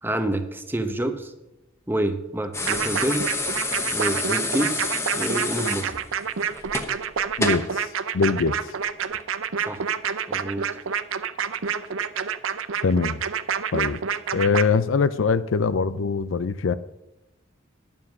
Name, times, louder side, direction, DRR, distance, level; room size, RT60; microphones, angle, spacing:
voice 1, 0.0-1.3 1.9-3.3 3.9-5.9 9.7-9.9 10.3-10.8, right 1 dB, 10° right, 7 dB, 0.9 m, -28 dB
sound 1, 2.5-7.7 9.1-9.2, left 2 dB, 15° left, 1.0 m, -29 dB
sound 2, 2.7-14.6, right 7 dB, 80° right, 0.6 m, -28 dB
voice 2, 7.4-7.9 8.1-8.7 12.8-13.2 13.7-14.0 14.3-16.7, left 5 dB, 75° left, 15 dB, 0.5 m, -22 dB
11.5 x 7.2 x 6.2 m, 0.94 s
head